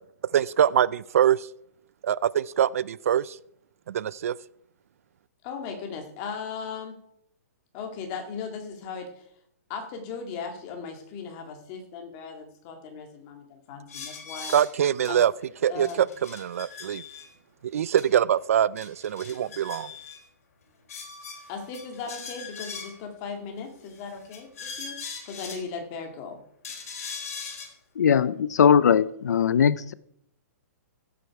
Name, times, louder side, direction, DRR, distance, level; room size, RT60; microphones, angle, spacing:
voice 1, 0.3-1.5 2.0-3.4 3.9-4.3 14.5-15.3 15.6-16.1 16.3-17.0 17.7-19.9, right 9 dB, 55° right, 21 dB, 0.4 m, -23 dB
voice 2, 5.4-7.0 7.7-9.3 9.7-14.5 15.1-15.2 15.6-16.0 21.5-25.0 25.3-26.4, left 5 dB, 25° left, 3 dB, 2.0 m, -37 dB
sound 1, 13.9-14.7 15.0-15.1 15.4-15.5 15.8-17.3 18.0-18.1 18.3-18.4 18.8-20.2 20.9-23.0 23.9-25.6 26.6-27.7, left 5 dB, 55° left, 4.2 m, -40 dB
voice 3, 28.0-29.9, left 7 dB, 80° left, 17 dB, 0.6 m, -20 dB
15.5 x 8.5 x 4.7 m, 0.70 s
hypercardioid pair, 170°, 9 cm